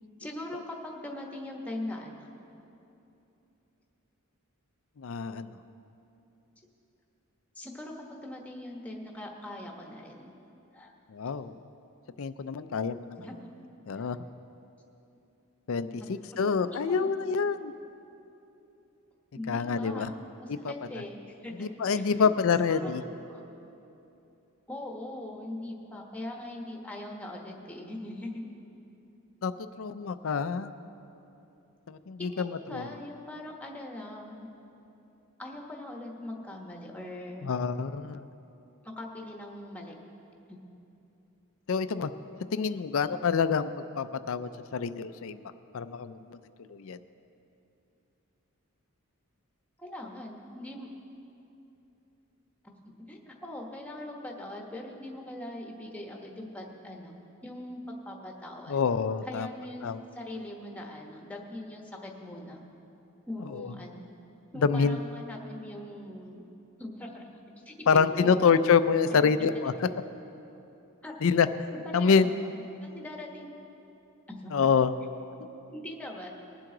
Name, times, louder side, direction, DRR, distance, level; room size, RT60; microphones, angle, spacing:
voice 1, 0.2-2.3 7.5-10.3 10.7-10.9 13.2-13.5 16.0-17.1 19.3-22.3 22.7-22.9 23.3-23.4 24.7-28.5 32.2-34.5 35.4-37.5 38.8-39.9 40.5-40.6 49.8-50.9 52.6-58.8 59.2-62.6 63.3-64.1 64.5-66.5 66.8-67.3 67.7-68.5 69.1-69.4 71.0-71.2 71.7-72.5 72.8-73.5 74.3-74.7 75.7-76.3, left 1 dB, 5° left, 0 dB, 1.1 m, -41 dB
voice 2, 5.0-5.6 11.1-11.5 12.2-13.2 13.9-14.2 15.7-17.7 19.5-20.1 20.5-20.7 21.6-23.0 29.4-29.5 29.8-30.7 31.9-32.9 37.4-38.2 41.7-42.1 42.5-43.7 44.0-45.4 45.7-46.4 46.7-47.0 58.7-59.5 59.8-60.0 63.5-63.7 64.6-65.0 67.9-69.9 71.2-71.5 71.9-72.3 74.5-74.9, left 5 dB, 65° left, 12 dB, 0.4 m, -26 dB
20.5 x 7.6 x 3.8 m, 2.9 s
head